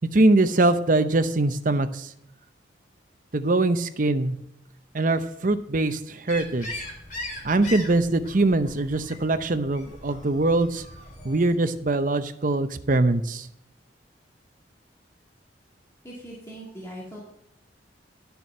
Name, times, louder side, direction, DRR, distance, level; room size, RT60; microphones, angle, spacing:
voice 1, 0.1-2.1 3.3-4.3 4.9-6.8 7.4-10.8 11.2-13.5, right 2 dB, 45° right, 10 dB, 0.7 m, -22 dB
sound 1, 6.3-11.5, left 2 dB, 45° left, 3.3 m, -40 dB
voice 2, 16.0-17.2, equal, 15° left, -6 dB, 2.3 m, -40 dB
12.0 x 6.9 x 5.5 m, 0.78 s
head